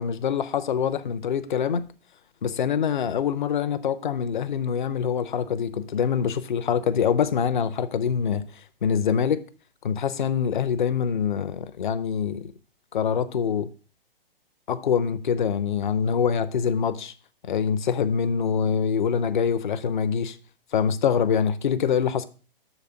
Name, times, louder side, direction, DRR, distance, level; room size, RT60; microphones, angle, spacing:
voice 1, 0.0-1.8 2.4-9.4 9.8-12.5 12.9-13.7 14.7-17.1 17.5-20.4 20.7-22.3, left 7 dB, 55° left, 0.6 m, -25 dB
6.6 x 4.1 x 6.4 m
figure-of-eight pair, 120°, 29 cm